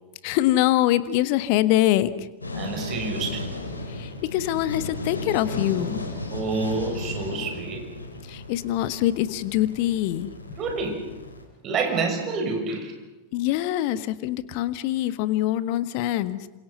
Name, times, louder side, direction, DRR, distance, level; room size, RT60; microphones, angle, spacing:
voice 1, 0.2-2.3 3.9-6.1 8.2-10.3 13.3-16.5, left 14 dB, 45° left, 14 dB, 1.4 m, -24 dB
sound 1, 2.4-11.4, left 2 dB, 80° left, 5.4 m, -35 dB
voice 2, 2.5-3.5 6.3-7.9 10.6-11.1 11.6-12.9, right 4 dB, 30° right, 3 dB, 6.4 m, -28 dB
28.5 x 27.0 x 5.6 m, 1.1 s
figure-of-eight pair, 90°, 0 cm